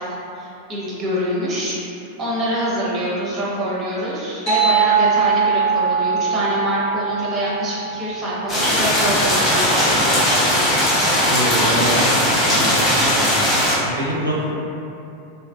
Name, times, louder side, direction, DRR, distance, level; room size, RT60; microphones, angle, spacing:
voice 1, 0.0-1.8 2.2-10.2, equal, 25° right, -6 dB, 0.7 m, -25 dB
sound 1, 4.5-9.4, right 6 dB, 40° left, 1.0 m, -21 dB
sound 2, 8.5-13.7, equal, 15° left, 0.9 m, -18 dB
voice 2, 11.3-12.1 12.4-13.3 14.0-14.5, equal, 85° right, -6 dB, 0.4 m, -25 dB
2.7 x 2.4 x 2.2 m, 2.7 s
figure-of-eight pair, 90°, 0 cm